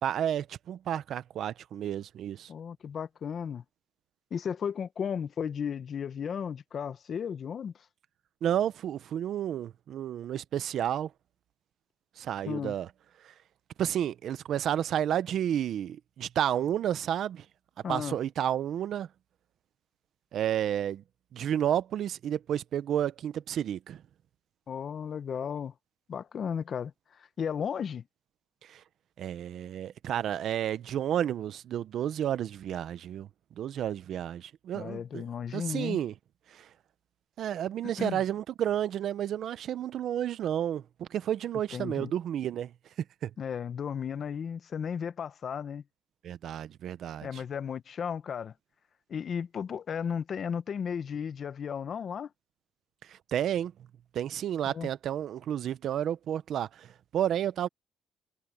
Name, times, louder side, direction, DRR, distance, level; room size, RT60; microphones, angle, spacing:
voice 1, 0.0-2.5 8.4-11.1 12.2-12.9 13.2-13.3 13.8-17.4 17.9-19.1 20.3-21.0 21.3-24.0 28.6-28.8 29.2-33.3 33.6-35.2 35.5-36.1 36.5-36.7 37.4-42.7 43.2-43.3 46.2-47.4 53.0-53.7 54.1-57.7, right 10 dB, 70° right, 0.8 m, -31 dB
voice 2, 2.5-3.6 4.3-7.7 12.4-12.7 17.8-18.2 24.7-25.7 26.1-28.0 34.7-36.0 38.0-38.2 41.7-42.1 43.4-45.8 47.2-48.5 49.1-52.3 54.6-54.9, left 7 dB, 55° left, 1.2 m, -34 dB
cardioid pair, 90°, 0 cm